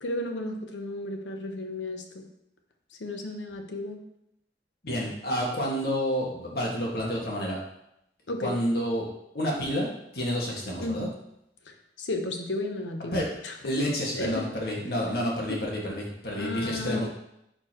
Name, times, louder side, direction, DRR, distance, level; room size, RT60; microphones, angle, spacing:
voice 1, 0.0-2.3 3.0-4.0 8.3-8.5 10.8-11.1 11.7-13.8 14.1-14.4 15.5-15.6 16.4-17.1, left 2 dB, 85° left, 4 dB, 1.0 m, -33 dB
voice 2, 4.8-7.6 8.4-9.0 9.3-9.9 10.1-11.1 13.1-13.3 13.6-17.1, equal, 55° left, -3 dB, 1.8 m, -29 dB
11.0 x 4.4 x 3.0 m, 0.80 s
head